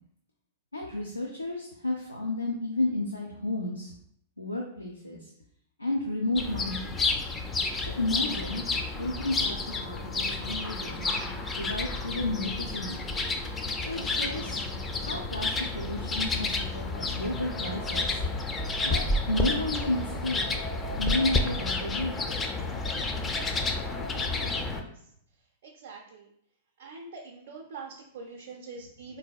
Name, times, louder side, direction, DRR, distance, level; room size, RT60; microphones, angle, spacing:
voice 1, 0.7-3.9 4.4-5.3 5.8-7.1 7.8-8.6 9.0-11.1 11.6-13.0 13.8-14.6 15.0-18.2 18.8-20.4 21.0-22.3 28.4-28.5, left 2 dB, 90° left, -1 dB, 0.4 m, -32 dB
sound 1, 6.4-24.8, left 3 dB, 20° left, 0.4 m, -30 dB
voice 2, 25.6-26.3 26.8-29.2, right 4 dB, 60° right, -2 dB, 0.5 m, -44 dB
3.9 x 2.6 x 2.3 m, 0.71 s
figure-of-eight pair, 95°, 0 cm